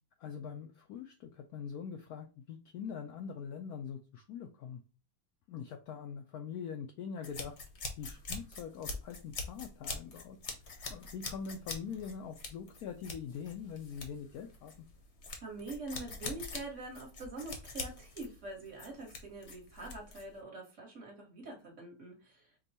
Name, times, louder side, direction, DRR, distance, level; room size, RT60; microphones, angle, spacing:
voice 1, 0.2-4.8 5.5-7.5 8.0-10.4 10.9-14.9, left 7 dB, 85° left, 5 dB, 0.8 m, -43 dB
sound 1, 7.2-20.4, left 3 dB, 50° left, 0.9 m, -44 dB
voice 2, 15.4-22.5, right 2 dB, 40° right, -1 dB, 1.4 m, -45 dB
5.2 x 2.3 x 4.1 m, 0.33 s
omnidirectional pair, 2.2 m